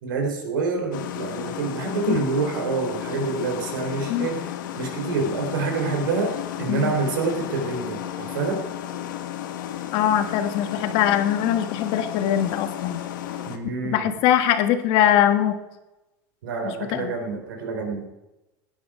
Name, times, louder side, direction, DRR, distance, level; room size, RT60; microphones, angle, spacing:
voice 1, 0.0-6.3 6.6-8.6 13.5-14.1 16.4-18.0, right 4 dB, 90° right, 4 dB, 3.8 m, -27 dB
sound 1, 0.9-13.6, left 11 dB, 85° left, 1.6 m, -33 dB
voice 2, 9.9-13.0 13.8-15.5 16.6-17.1, left 11 dB, 55° left, 7 dB, 1.7 m, -22 dB
17.5 x 10.0 x 5.0 m, 1.0 s
supercardioid pair, 135°, 10 cm